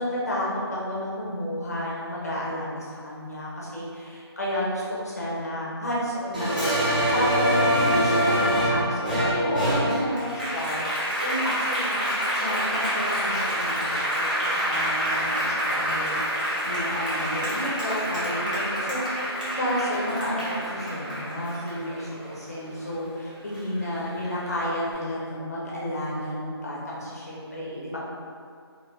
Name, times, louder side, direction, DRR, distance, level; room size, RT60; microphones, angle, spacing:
voice 1, 0.0-19.3 19.6-28.0, equal, 35° left, -6 dB, 0.6 m, -31 dB
Applause, 6.3-23.1 23.5-24.7, equal, 15° right, 0.4 m, -26 dB
2.6 x 2.1 x 2.8 m, 2.2 s
figure-of-eight pair, 175°, 14 cm